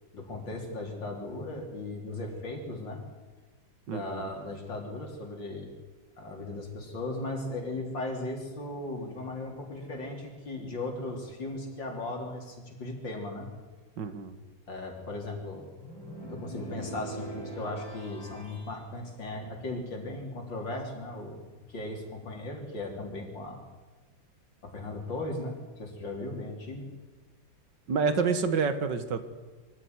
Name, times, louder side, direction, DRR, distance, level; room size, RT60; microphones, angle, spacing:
voice 1, 0.1-3.0 3.9-5.7 6.2-13.5 14.7-15.7 16.3-21.4 21.7-23.6 24.6-26.9, left 2 dB, 80° left, 2 dB, 4.4 m, -37 dB
voice 2, 3.9-4.3 14.0-14.3 27.9-29.2, right 5 dB, 70° right, 10 dB, 2.1 m, -28 dB
sound 1, 15.8-18.8, right 1 dB, 10° left, 7.5 m, -42 dB
23.5 x 15.0 x 9.6 m, 1.3 s
omnidirectional pair, 2.0 m